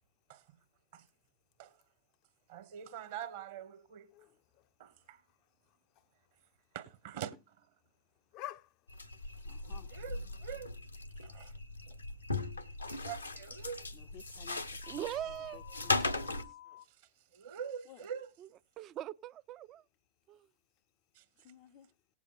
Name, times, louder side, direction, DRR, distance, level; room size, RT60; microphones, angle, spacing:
voice 1, 2.5-4.1 4.8-5.2 6.7-7.7 9.9-10.7 11.2-11.5 11.9-12.0 13.0-13.9 16.9-18.3 21.1-21.2, right 8 dB, 55° right, 1.4 m, -44 dB
voice 2, 8.3-8.7 9.4-9.9 13.9-15.1 15.5-15.9 16.7-16.8 17.9-18.0 21.4-21.9, left 13 dB, 40° left, 0.6 m, -50 dB
sound 1, 8.9-16.4, left 3 dB, 85° left, 1.1 m, -38 dB
sound 2, 14.8-16.8, left 13 dB, 60° left, 0.9 m, -53 dB
voice 3, 14.9-15.8 18.8-19.8 20.3-20.5, right 12 dB, 35° right, 0.5 m, -41 dB
19.0 x 8.1 x 2.5 m
figure-of-eight pair, 90°, 0 cm